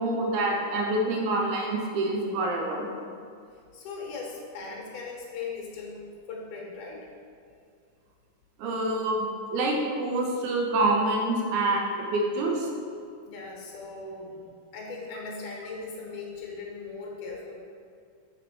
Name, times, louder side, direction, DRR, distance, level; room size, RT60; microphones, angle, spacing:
voice 1, 0.0-2.9 8.6-12.7, right 2 dB, 80° right, 0 dB, 2.1 m, -26 dB
voice 2, 3.7-7.1 13.3-17.5, left 4 dB, 80° left, -1 dB, 2.5 m, -39 dB
5.2 x 4.6 x 4.4 m, 2.3 s
omnidirectional pair, 3.6 m